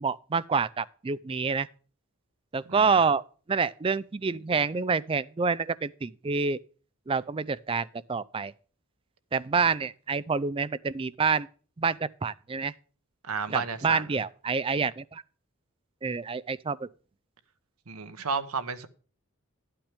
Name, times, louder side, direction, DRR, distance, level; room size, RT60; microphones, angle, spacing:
voice 1, 0.0-1.7 2.5-3.2 3.5-6.6 7.1-8.5 9.3-11.5 11.8-12.7 13.5-15.2 16.0-16.9, right 5 dB, 25° right, 0.4 m, -27 dB
voice 2, 2.7-3.0 9.5-9.6 13.2-14.0 17.9-18.9, right 4 dB, 85° right, 1.0 m, -32 dB
11.5 x 8.8 x 3.4 m
head